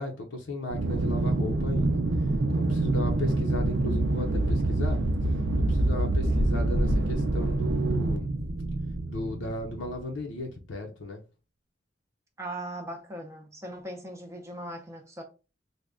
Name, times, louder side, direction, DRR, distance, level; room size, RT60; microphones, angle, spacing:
voice 1, 0.0-2.0 2.5-5.0 5.6-8.3 9.1-11.2, left 1 dB, 90° left, 0.7 m, -35 dB
Aircraft, 0.7-10.2, right 2 dB, 70° right, 0.5 m, -26 dB
sound 1, 6.1-7.3 8.4-8.7 9.0-9.2, equal, 35° left, 0.4 m, -31 dB
voice 2, 12.4-15.2, right 1 dB, 15° right, 0.5 m, -39 dB
3.4 x 2.1 x 3.7 m
head